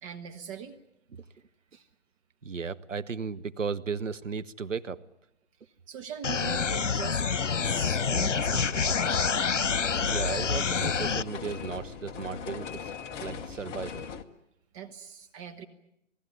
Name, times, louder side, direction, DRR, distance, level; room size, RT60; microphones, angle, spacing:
voice 1, 0.0-0.8 1.7-1.9 5.6-7.3 7.6-9.2 14.7-15.7, right 8 dB, 25° right, 5 dB, 1.3 m, -41 dB
voice 2, 2.4-5.0 10.1-12.9 13.2-14.1, right 5 dB, 85° right, 12 dB, 1.2 m, -35 dB
sound 1, 6.2-11.2, left 6 dB, 75° left, 1.1 m, -27 dB
sound 2, 8.6-14.2, left 7 dB, 15° left, 0.9 m, -39 dB
28.0 x 18.5 x 9.3 m, 0.81 s
figure-of-eight pair, 140°, 37 cm